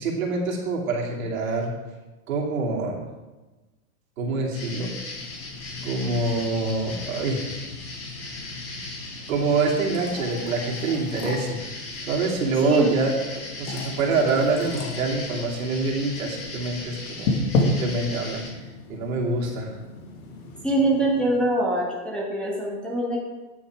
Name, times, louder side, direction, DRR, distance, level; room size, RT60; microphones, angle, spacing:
voice 1, 0.0-1.7 2.3-3.0 4.2-4.9 5.8-7.5 9.3-11.6 12.1-18.4 18.9-19.7, right 3 dB, 70° right, -2 dB, 2.7 m, -26 dB
sound 1, 4.5-18.5, left 2 dB, 30° left, 3.7 m, -38 dB
sound 2, 5.1-21.5, left 2 dB, 80° left, 1.9 m, -34 dB
voice 2, 12.6-12.9 20.6-23.2, right 1 dB, ahead, -6 dB, 1.1 m, -23 dB
10.0 x 6.4 x 4.7 m, 1.2 s
supercardioid pair, 155°, 43 cm